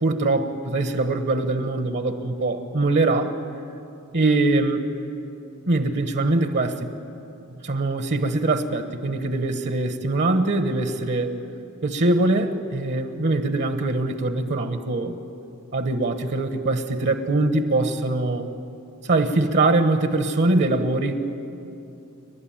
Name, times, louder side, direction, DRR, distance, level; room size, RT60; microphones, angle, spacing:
voice 1, 0.0-3.3 4.1-4.9 5.7-6.9 7.6-11.3 11.8-15.2 15.7-18.5 19.0-21.2, right 2 dB, 55° right, 8 dB, 1.2 m, -22 dB
29.5 x 12.0 x 8.9 m, 2.8 s
head